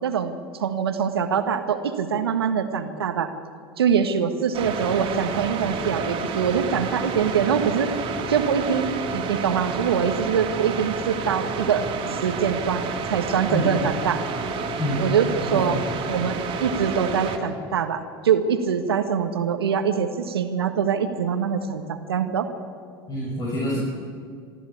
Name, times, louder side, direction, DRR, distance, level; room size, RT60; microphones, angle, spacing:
voice 1, 0.0-3.3 3.8-7.9 8.3-11.8 12.2-12.8 13.1-14.2 15.0-15.8 16.1-22.5, right 7 dB, 85° right, 8 dB, 1.6 m, -24 dB
sound 1, 4.5-17.4, right 4 dB, 45° right, 3.0 m, -30 dB
voice 2, 13.5-13.9 14.8-15.1 15.5-15.8 23.1-23.8, left 1 dB, 30° left, -4 dB, 6.3 m, -27 dB
24.0 x 14.0 x 8.6 m, 2.3 s
hypercardioid pair, 80°, 13 cm